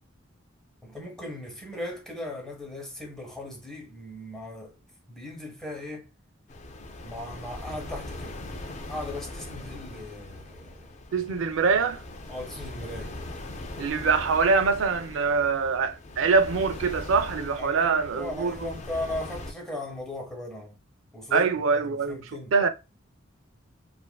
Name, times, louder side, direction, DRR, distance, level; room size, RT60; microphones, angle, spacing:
voice 1, 0.8-4.7 5.1-6.0 7.0-8.4 8.9-10.9 12.3-13.2 17.6-20.7 21.1-21.5 21.8-22.5, left 1 dB, 5° left, 0.8 m, -37 dB
sound 1, 6.5-19.5, left 2 dB, 35° left, 0.3 m, -40 dB
voice 2, 11.1-12.0 13.8-18.7 21.3-22.7, right 5 dB, 85° right, 0.4 m, -24 dB
2.4 x 2.4 x 2.2 m
head